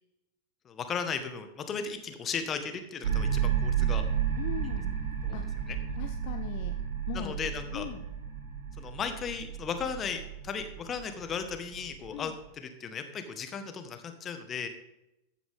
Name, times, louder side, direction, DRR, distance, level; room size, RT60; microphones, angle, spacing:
voice 1, 0.6-4.1 5.2-5.4 5.7-5.8 7.1-7.9 8.8-14.7, left 6 dB, 25° left, 8 dB, 1.6 m, -36 dB
sound 1, 3.0-12.4, right 8 dB, 65° right, 2.0 m, -32 dB
voice 2, 4.4-4.9 5.3-6.7 7.1-7.4 7.7-8.1 12.1-12.3, left 13 dB, 45° left, 6 dB, 0.8 m, -40 dB
14.0 x 9.5 x 3.7 m, 0.87 s
figure-of-eight pair, 90°, 0 cm